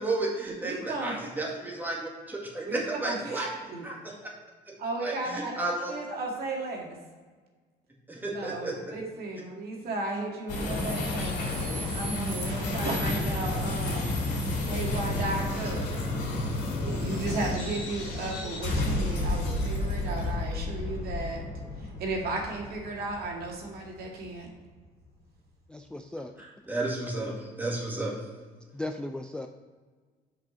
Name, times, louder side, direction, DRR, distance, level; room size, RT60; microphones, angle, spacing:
voice 1, 0.0-3.5 3.8-4.2 4.7-4.8 5.0-5.9 8.1-8.8 26.4-28.1, right 2 dB, 10° right, -3 dB, 1.9 m, -32 dB
voice 2, 0.6-1.1 2.6-3.4 3.7-3.9 4.8-5.6 5.9-7.0 8.3-11.5 11.9-14.2 14.6-15.9 16.8-21.5 21.8-24.5, right 2 dB, 65° right, -1 dB, 1.9 m, -34 dB
sound 1, 10.5-23.9, left 2 dB, 85° left, 2.1 m, -31 dB
voice 3, 25.7-26.3 28.7-29.5, left 1 dB, 5° left, 5 dB, 0.3 m, -36 dB
6.1 x 5.1 x 5.0 m, 1.4 s
cardioid pair, 110°, 17 cm